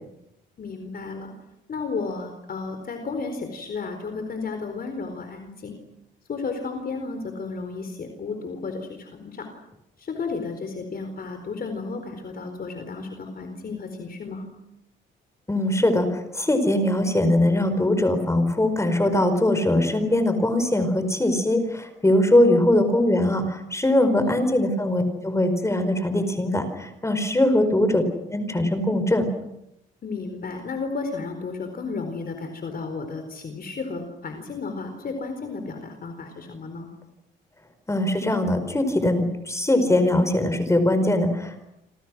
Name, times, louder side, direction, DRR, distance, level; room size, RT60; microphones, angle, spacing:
voice 1, 0.6-1.3 1.7-5.8 6.3-9.5 10.0-14.5 22.4-22.7 24.2-24.5 27.4-27.6 30.0-36.9, left 4 dB, 50° left, 6 dB, 4.4 m, -33 dB
voice 2, 15.5-28.0 28.3-29.3 37.9-41.6, left 1 dB, 15° left, 9 dB, 4.8 m, -21 dB
28.0 x 27.0 x 6.3 m, 0.84 s
cardioid pair, 90°, 20 cm